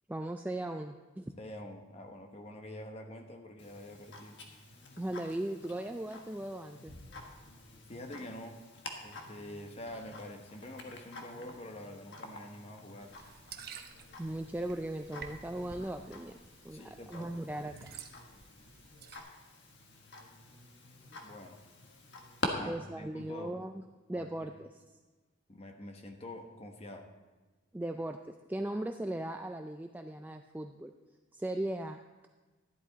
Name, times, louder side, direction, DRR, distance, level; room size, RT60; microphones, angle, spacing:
voice 1, 0.1-1.3 5.0-7.0 14.2-16.4 16.6-17.9 22.7-23.8 24.1-24.8 27.7-30.9 31.3-32.0, right 1 dB, 10° right, 5 dB, 0.3 m, -38 dB
voice 2, 1.4-4.4 7.9-8.6 9.0-13.2 16.7-17.6 21.2-21.6 22.5-23.6 24.1-24.5 25.5-27.1, left 1 dB, 35° left, 4 dB, 1.1 m, -46 dB
Tick-tock, 3.6-22.5, left 2 dB, 65° left, 1.5 m, -47 dB
sound 1, 13.0-19.2, right 6 dB, 50° right, 0.8 m, -51 dB
12.5 x 11.0 x 4.0 m, 1.2 s
head